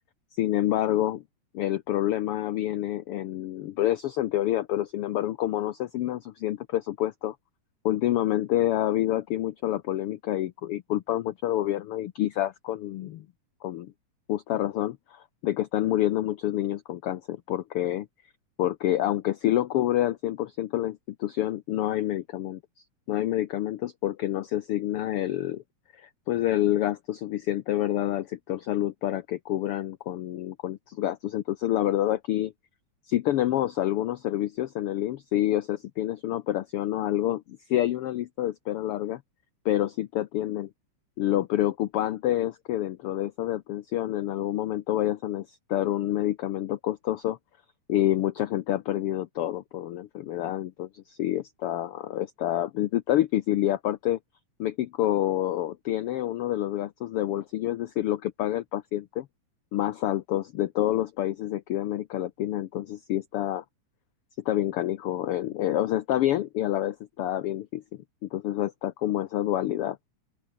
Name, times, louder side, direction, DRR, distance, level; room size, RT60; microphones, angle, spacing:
voice 1, 0.3-1.2 1.5-7.4 7.8-13.3 13.6-13.9 14.3-18.1 18.6-25.6 25.9-32.5 33.1-39.2 39.6-40.7 41.2-47.4 47.9-54.2 54.6-59.3 59.7-63.6 64.4-67.8 68.2-70.0, left 13 dB, 80° left, 1.2 m, -28 dB
open air
omnidirectional pair, 3.5 m